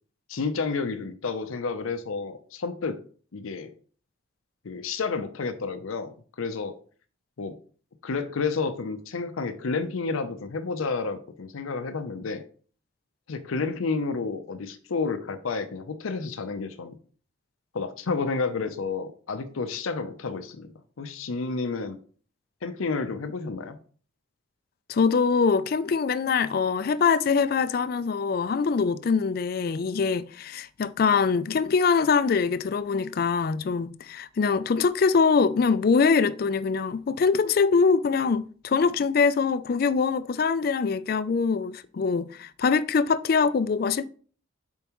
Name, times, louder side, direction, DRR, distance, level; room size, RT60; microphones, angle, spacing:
voice 1, 0.3-3.0 3.3-3.7 4.6-6.1 6.4-6.8 7.4-7.6 8.0-12.4 13.3-16.9 17.7-20.7 21.0-22.0 22.6-23.8, left 4 dB, 90° left, 0.6 m, -30 dB
voice 2, 24.9-44.0, left 5 dB, 45° left, 0.3 m, -23 dB
6.9 x 4.5 x 3.0 m
head